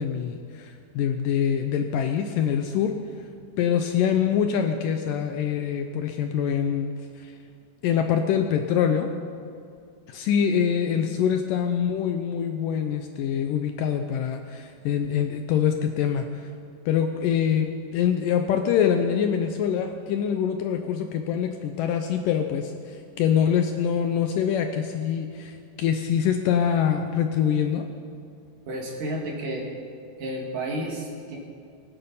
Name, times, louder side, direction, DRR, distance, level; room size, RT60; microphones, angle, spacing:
voice 1, 0.0-2.9 3.6-6.9 7.2-7.3 7.8-9.1 10.1-16.2 16.9-27.8, left 8 dB, 85° left, 5 dB, 1.9 m, -24 dB
voice 2, 28.7-29.7 30.2-31.4, right 1 dB, 55° right, -1 dB, 3.2 m, -31 dB
24.5 x 9.1 x 5.5 m, 2.4 s
omnidirectional pair, 4.7 m